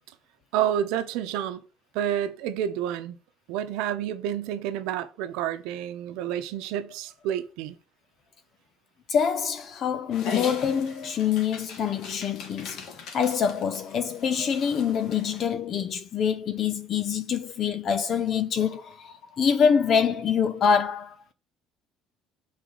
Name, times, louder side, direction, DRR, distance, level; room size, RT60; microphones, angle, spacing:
voice 1, 0.5-1.6 1.9-3.2 3.5-7.7, right 10 dB, 85° right, 0.8 m, -29 dB
voice 2, 9.1-12.9 13.1-21.2, left 7 dB, 35° left, 0.4 m, -25 dB
Dog, 10.1-15.5, left 7 dB, 50° left, 1.3 m, -37 dB
6.7 x 4.0 x 3.9 m
cardioid pair, 180°, 0 cm